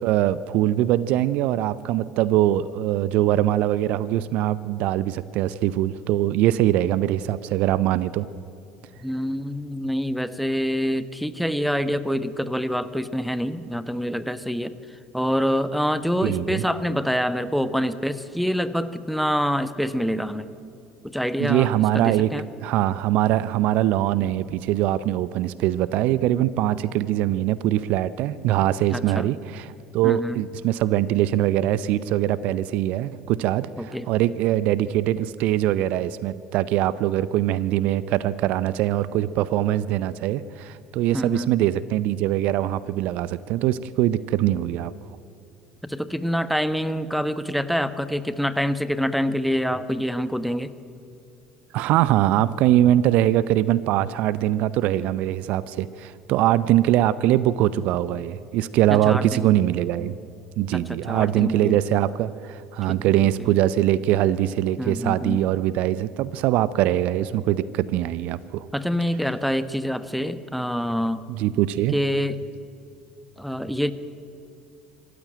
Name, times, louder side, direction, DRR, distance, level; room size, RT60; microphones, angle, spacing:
voice 1, 0.0-8.3 16.2-16.6 21.4-22.3 22.6-44.9 51.7-60.1 60.6-68.6 71.3-72.0, right 13 dB, 55° right, 18 dB, 0.6 m, -22 dB
voice 2, 9.0-14.7 15.1-20.5 21.0-22.4 28.9-29.3 30.0-30.4 33.8-34.1 41.1-41.5 45.8-50.7 58.9-59.5 60.7-61.8 62.9-63.0 63.4-63.5 64.8-65.4 68.7-71.2 71.9-72.4 73.4-73.9, equal, ahead, 14 dB, 1.1 m, -26 dB
25.5 x 14.5 x 8.9 m, 2.7 s
figure-of-eight pair, 65°, 3 cm